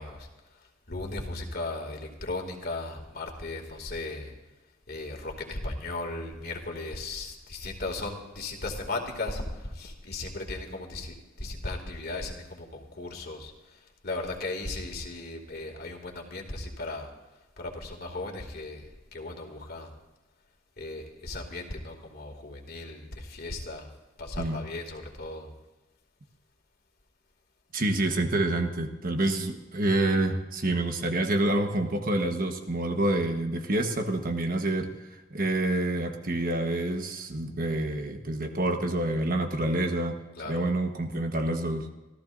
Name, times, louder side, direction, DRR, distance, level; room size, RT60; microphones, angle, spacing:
voice 1, 0.0-4.3 4.9-17.1 17.6-19.9 20.8-23.9 24.2-25.5 29.2-29.4 40.4-40.7, left 2 dB, 55° left, 3 dB, 2.5 m, -37 dB
voice 2, 27.7-34.9 35.3-40.2 40.5-41.9, right 1 dB, 45° right, 5 dB, 1.3 m, -27 dB
27.0 x 14.0 x 2.6 m, 1.1 s
head